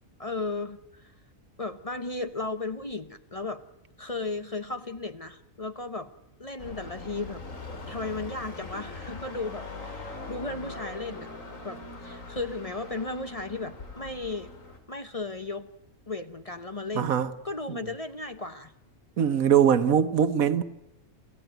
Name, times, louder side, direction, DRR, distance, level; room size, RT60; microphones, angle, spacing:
voice 1, 0.2-1.1 1.6-3.6 4.0-6.1 6.4-7.4 7.9-11.3 11.6-14.5 14.9-15.7 16.1-17.1 17.4-18.7, left 3 dB, 30° left, 0.9 m, -35 dB
sound 1, 6.6-14.8, left 3 dB, 65° left, 3.1 m, -41 dB
voice 2, 16.9-17.3 17.7-17.9 19.2-20.6, right 8 dB, 80° right, 1.5 m, -22 dB
29.5 x 15.0 x 9.1 m
omnidirectional pair, 1.4 m